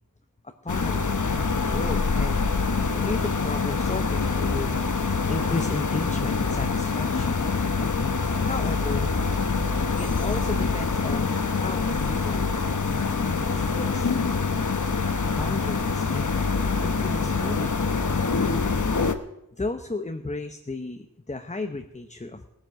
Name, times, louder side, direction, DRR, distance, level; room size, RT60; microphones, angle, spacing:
voice 1, 0.4-1.2 1.6-2.4 2.9-4.7 5.3-7.4 8.4-9.1 10.0-12.5 13.2-14.1 15.4-16.3 16.8-17.8 19.5-22.5, left 2 dB, 20° left, 6 dB, 0.9 m, -34 dB
sound 1, 0.7-19.1, left 4 dB, 60° left, 1.0 m, -25 dB
17.0 x 9.3 x 6.4 m, 0.85 s
wide cardioid pair, 75°, 34 cm